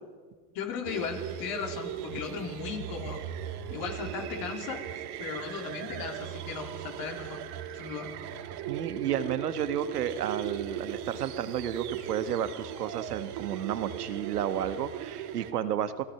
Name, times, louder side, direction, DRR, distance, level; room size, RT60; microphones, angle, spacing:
voice 1, 0.5-3.2 3.7-7.4 7.7-8.1, left 6 dB, 50° left, 2 dB, 3.9 m, -37 dB
sound 1, 0.8-15.5, right 10 dB, 60° right, 2.2 m, -38 dB
voice 2, 8.7-16.0, right 9 dB, 90° right, 11 dB, 1.5 m, -32 dB
28.0 x 18.0 x 5.8 m, 1.5 s
hypercardioid pair, 90°, 45 cm